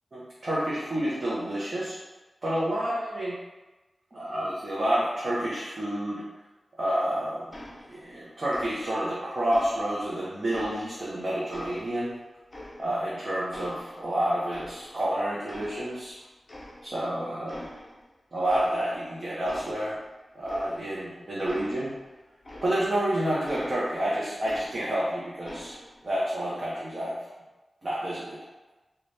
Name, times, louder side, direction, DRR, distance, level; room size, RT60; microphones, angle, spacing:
voice 1, 0.1-2.0 2.4-3.4 4.1-6.2 6.8-7.5 7.9-12.1 12.8-16.1 16.8-17.6 18.3-20.0 20.3-21.9 22.6-25.7 26.0-27.2 27.8-28.4, right 1 dB, 40° right, -8 dB, 0.7 m, -29 dB
sound 1, 7.5-8.2 8.5-9.1 9.5-11.1 11.5-13.2 13.5-15.1 15.5-16.2 16.5-17.1 17.5-18.0 18.4-19.1 19.4-23.1 23.4-25.1 25.4-26.1, left 1 dB, 25° left, 0.5 m, -46 dB
3.9 x 2.2 x 3.2 m, 1.1 s
wide cardioid pair, 110°, 0 cm